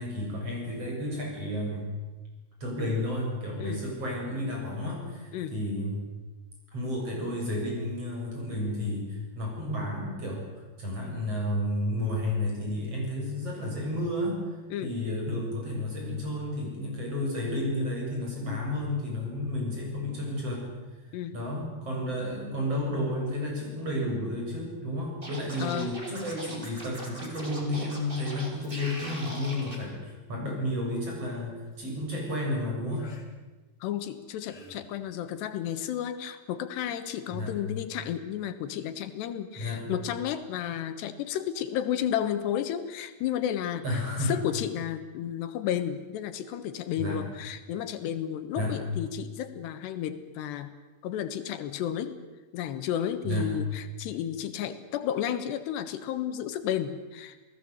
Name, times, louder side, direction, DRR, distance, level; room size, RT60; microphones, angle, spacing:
voice 1, 0.0-1.9 2.6-6.1 6.7-14.4 14.8-20.7 21.3-33.1 37.3-37.6 39.6-39.8 43.8-44.3 47.0-47.2 48.6-48.8 53.2-53.5, left 1 dB, 35° right, -1 dB, 8.2 m, -32 dB
Scratching (performance technique), 25.2-29.8, equal, 15° right, 3.9 m, -41 dB
voice 2, 25.6-25.9 33.8-50.7 51.0-52.2 52.5-57.4, left 10 dB, 80° left, 10 dB, 3.4 m, -32 dB
sound 1, 31.3-31.8 33.0-33.3 34.1-34.9 36.1-36.2, left 3 dB, 40° left, 3.8 m, -52 dB
28.5 x 18.5 x 8.2 m, 1.2 s
omnidirectional pair, 4.9 m